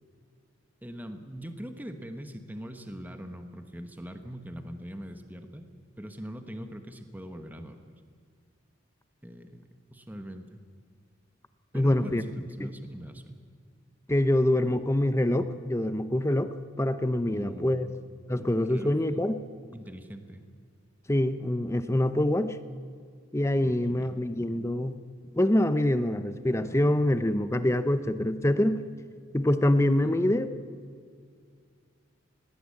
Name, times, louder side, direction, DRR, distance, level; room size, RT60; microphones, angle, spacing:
voice 1, 0.8-5.7 6.0-7.9 9.2-9.6 9.9-10.6 11.7-13.4 17.3-17.9 18.4-19.0 19.7-20.5 23.6-24.3 30.0-30.4, equal, 10° right, 7 dB, 1.2 m, -42 dB
voice 2, 11.7-12.2 12.6-12.7 14.1-17.9 18.3-19.4 21.1-22.6 23.3-25.0 25.3-28.8 29.3-30.5, left 1 dB, 15° left, 11 dB, 0.7 m, -25 dB
19.5 x 17.0 x 8.5 m, 2.1 s
head